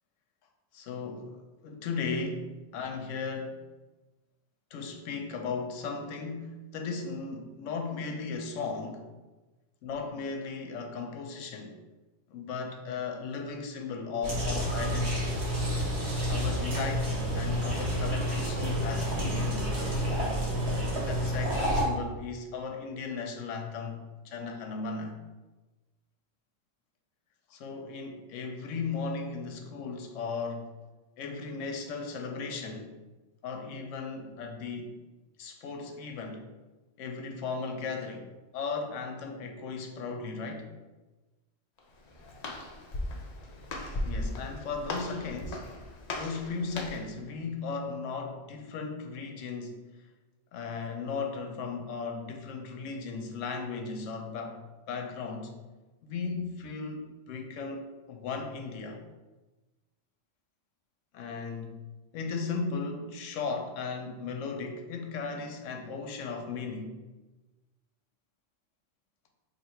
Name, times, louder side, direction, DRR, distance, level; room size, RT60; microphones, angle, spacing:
voice 1, 0.7-1.3 1.6-3.6 4.7-9.0 9.8-11.8 12.3-15.4 16.3-19.7 20.9-25.2 27.5-30.7 31.2-32.9 33.4-35.0 35.4-36.4 37.0-38.3 38.5-40.6 44.0-45.6 46.1-49.8 50.5-54.6 54.9-55.5 56.0-57.8 58.1-59.0 61.1-61.8 62.1-67.0, left 4 dB, 85° left, 4 dB, 0.9 m, -36 dB
sound 1, 14.2-21.8, equal, 60° right, 1.3 m, -29 dB
Walk footsteps, 41.8-47.2, left 1 dB, 60° left, 0.4 m, -37 dB
2.8 x 2.7 x 4.3 m, 1.2 s
omnidirectional pair, 1.3 m